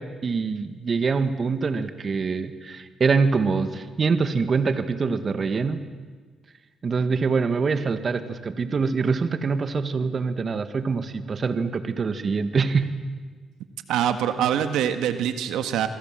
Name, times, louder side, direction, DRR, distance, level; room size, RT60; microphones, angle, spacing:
voice 1, 0.0-5.8 6.8-12.9, right 4 dB, 40° right, 10 dB, 1.8 m, -24 dB
voice 2, 13.9-15.9, right 9 dB, 85° right, 9 dB, 1.6 m, -24 dB
28.5 x 23.0 x 7.6 m, 1.5 s
cardioid pair, 90°, 0 cm